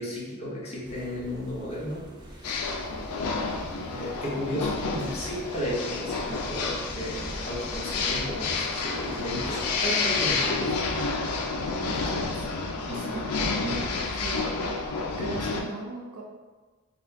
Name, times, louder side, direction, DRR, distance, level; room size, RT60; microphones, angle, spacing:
voice 1, 0.0-2.0 2.3-2.5 3.9-11.0 12.9-13.3 13.6-14.2, equal, 30° left, -6 dB, 0.9 m, -34 dB
sound 1, 0.8-10.5, equal, 20° right, 0.4 m, -45 dB
sound 2, 2.4-15.6, left 4 dB, 90° left, 0.4 m, -30 dB
voice 2, 11.8-13.3 14.2-14.6 15.1-16.2, right 3 dB, 85° right, -2 dB, 0.7 m, -39 dB
4.1 x 2.2 x 2.7 m, 1.3 s
head